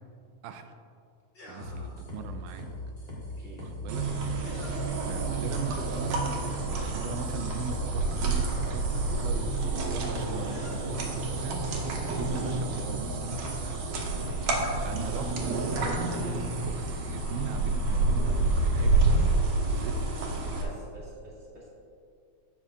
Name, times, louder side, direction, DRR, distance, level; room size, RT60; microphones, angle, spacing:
voice 1, 0.4-0.8 1.5-2.7 3.6-4.1 4.6-4.7 5.0-11.7 12.1-13.8 14.8-16.0 16.2-19.3 19.7-20.1, right 6 dB, 90° right, 7 dB, 2.1 m, -39 dB
sound 1, 1.3-2.0 4.4-5.1 7.2-7.3 8.9-9.6 10.4-11.0, equal, 50° left, 0.7 m, -48 dB
sound 2, 1.6-9.4, left 2 dB, 20° left, 1.3 m, -40 dB
sound 3, 3.9-20.6, right 2 dB, 70° right, 2.3 m, -29 dB
voice 2, 20.5-21.7, equal, 25° right, -7 dB, 1.9 m, -47 dB
16.0 x 5.6 x 2.4 m, 2.3 s
omnidirectional pair, 3.5 m